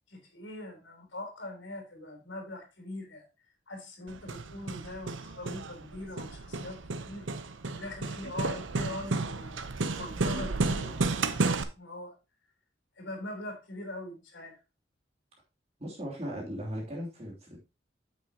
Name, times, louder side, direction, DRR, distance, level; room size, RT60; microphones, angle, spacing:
voice 1, 0.1-3.3 3.7-6.8 7.1-7.3 7.7-12.2 13.0-14.6, left 1 dB, 85° left, 3 dB, 3.7 m, -42 dB
Hammer, 4.1-11.6, right 3 dB, 85° right, 0.8 m, -32 dB
voice 2, 15.8-17.6, equal, 35° right, -3 dB, 3.0 m, -37 dB
9.3 x 7.3 x 2.8 m, 0.27 s
head